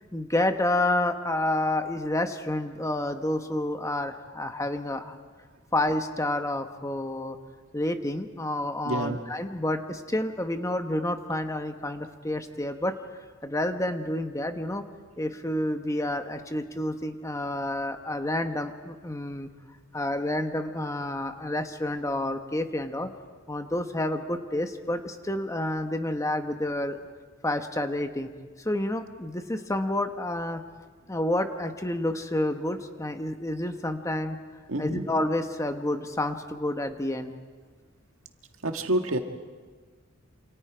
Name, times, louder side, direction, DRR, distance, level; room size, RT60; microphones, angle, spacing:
voice 1, 0.1-5.2 5.7-7.4 7.7-12.9 13.4-14.8 15.2-19.5 19.9-23.1 23.5-27.0 27.4-28.3 28.6-30.6 31.1-34.4 34.8-37.3, left 1 dB, 15° left, 7 dB, 1.1 m, -29 dB
voice 2, 8.8-9.2 34.7-35.0 38.6-39.2, right 1 dB, 75° right, 5 dB, 1.8 m, -27 dB
28.0 x 27.0 x 5.0 m, 1.5 s
head